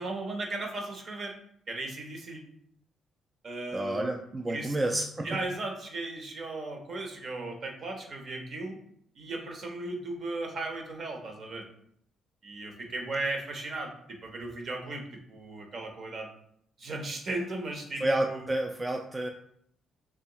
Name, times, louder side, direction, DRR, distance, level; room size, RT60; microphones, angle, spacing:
voice 1, 0.0-1.4 1.7-2.4 3.4-4.1 4.5-4.8 5.2-8.8 9.2-11.7 12.4-16.3 16.8-18.5, right 2 dB, 55° right, 2 dB, 0.8 m, -36 dB
voice 2, 3.7-5.4 18.0-19.3, right 1 dB, 20° right, 3 dB, 0.3 m, -30 dB
3.6 x 3.0 x 2.9 m, 0.69 s
cardioid pair, 90°, 0 cm